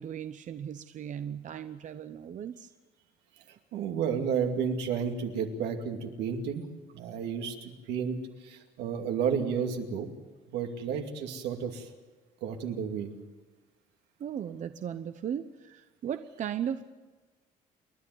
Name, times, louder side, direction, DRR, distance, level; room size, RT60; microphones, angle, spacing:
voice 1, 0.0-2.7 14.2-16.9, right 9 dB, 45° right, 9 dB, 0.8 m, -37 dB
voice 2, 3.7-6.6 6.9-8.2 8.4-10.1 10.5-11.9 12.4-13.1, right 7 dB, 85° right, 3 dB, 2.5 m, -31 dB
29.0 x 11.0 x 9.3 m, 1.3 s
cardioid pair, 110°, 17 cm